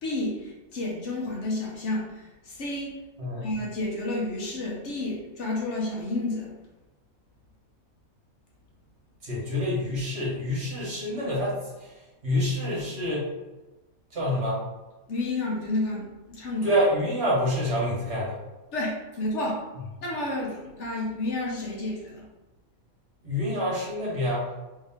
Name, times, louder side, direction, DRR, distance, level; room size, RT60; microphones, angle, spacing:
voice 1, 0.0-2.9 3.4-6.5 15.1-16.7 18.7-19.6 20.0-22.2, left 2 dB, 60° left, -3 dB, 0.9 m, -30 dB
voice 2, 9.2-13.3 14.1-14.6 16.6-18.4 23.2-24.5, equal, 50° right, -6 dB, 1.5 m, -27 dB
3.2 x 2.8 x 3.5 m, 1.1 s
omnidirectional pair, 1.5 m